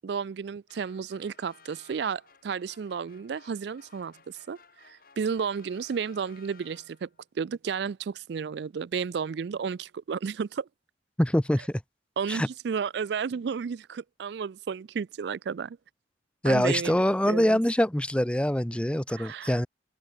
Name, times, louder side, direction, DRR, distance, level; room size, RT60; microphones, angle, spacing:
voice 1, 0.0-4.6 4.8-7.1 7.4-10.7 12.2-15.8 16.4-17.6 19.1-19.6, right 6 dB, 65° right, 0.4 m, -32 dB
sound 1, 0.7-7.2, left 5 dB, 50° left, 4.8 m, -57 dB
voice 2, 11.2-11.8 12.3-12.5 16.4-19.7, equal, 5° left, 0.7 m, -24 dB
head